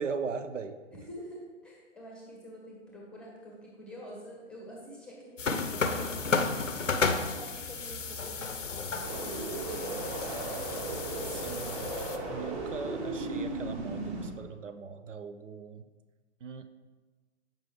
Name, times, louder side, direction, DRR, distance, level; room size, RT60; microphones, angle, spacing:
voice 1, 0.0-0.8 11.2-11.9 12.3-15.9 16.4-16.7, right 5 dB, 75° right, 10 dB, 0.5 m, -39 dB
voice 2, 0.9-6.6 6.9-10.9, equal, 5° left, -3 dB, 0.7 m, -47 dB
sound 1, 5.4-12.2, left 4 dB, 80° left, 0.6 m, -33 dB
sound 2, 9.0-14.3, right 2 dB, 25° right, 0.9 m, -36 dB
7.4 x 5.2 x 3.2 m, 1.3 s
figure-of-eight pair, 120°, 37 cm